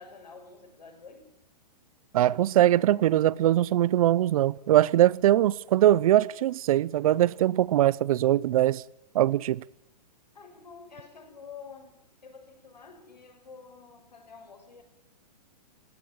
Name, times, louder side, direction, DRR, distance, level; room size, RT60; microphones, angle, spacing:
voice 1, 0.0-1.4 10.3-14.8, left 5 dB, 85° left, 6.4 m, -48 dB
voice 2, 2.1-8.8 9.1-9.6, right 13 dB, 55° right, 0.7 m, -22 dB
20.5 x 17.0 x 9.0 m
hypercardioid pair, 130°, 21 cm